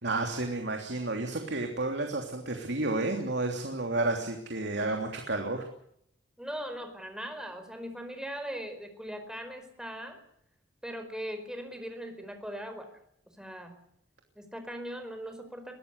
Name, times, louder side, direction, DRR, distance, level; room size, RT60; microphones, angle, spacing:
voice 1, 0.0-5.6, right 2 dB, 65° right, 3 dB, 3.1 m, -31 dB
voice 2, 6.4-10.2 10.8-12.9 13.4-13.8 14.3-15.8, equal, 5° right, 7 dB, 4.7 m, -39 dB
23.5 x 18.0 x 8.2 m, 0.71 s
head